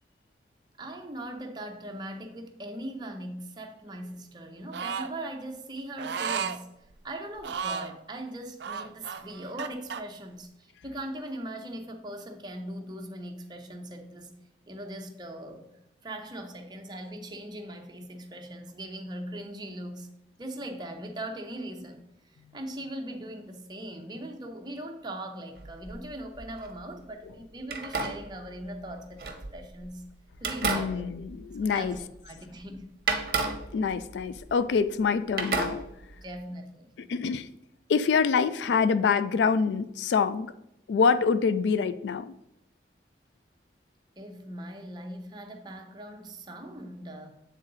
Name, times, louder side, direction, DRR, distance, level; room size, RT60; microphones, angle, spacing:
voice 1, 0.8-6.7 7.0-14.3 14.7-15.7 16.0-20.1 20.4-30.0 30.4-31.0 31.6-32.9 36.2-37.0 44.2-47.4, right 1 dB, 25° right, 3 dB, 0.7 m, -40 dB
sound 1, 4.7-5.1 6.0-6.6 7.4-7.9 8.6-10.0, right 6 dB, 75° right, 0.4 m, -33 dB
sound 2, 25.6-26.8 27.6-29.9 30.4-32.3 32.5-32.6 33.1-35.1 35.4-36.3, right 4 dB, 55° right, 0.9 m, -33 dB
voice 2, 30.6-32.0 33.7-35.9 37.1-37.5 37.9-40.5 40.9-42.3, left 5 dB, 80° left, 13 dB, 0.3 m, -25 dB
8.0 x 3.8 x 4.0 m, 0.81 s
head